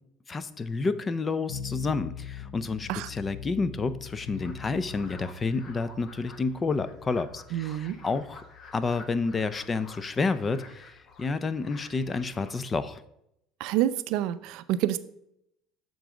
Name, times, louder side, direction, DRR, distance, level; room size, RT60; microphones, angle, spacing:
voice 1, 0.3-8.4 8.7-10.9 11.2-13.0, left 4 dB, 25° left, 14 dB, 0.5 m, -30 dB
sound 1, 1.5-12.6, left 9 dB, 85° left, 0.4 m, -44 dB
sound 2, 4.1-12.5, left 4 dB, 40° left, 1.0 m, -51 dB
voice 2, 7.5-8.0 13.6-15.0, right 13 dB, 70° right, 14 dB, 0.4 m, -28 dB
7.2 x 3.9 x 6.0 m, 0.79 s
supercardioid pair, 100°, 0 cm